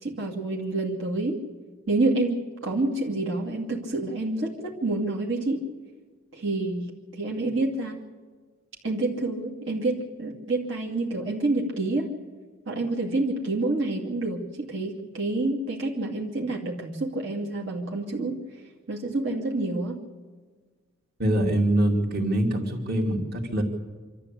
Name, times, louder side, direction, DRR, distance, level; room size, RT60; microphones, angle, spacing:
voice 1, 0.0-1.4 1.9-5.6 6.3-6.9 7.1-8.0 8.8-12.1 12.7-18.6 18.9-20.0, right 2 dB, 65° right, -2 dB, 2.6 m, -28 dB
voice 2, 21.2-23.6, right 1 dB, 50° right, 2 dB, 2.9 m, -24 dB
26.0 x 13.0 x 8.4 m, 1.4 s
head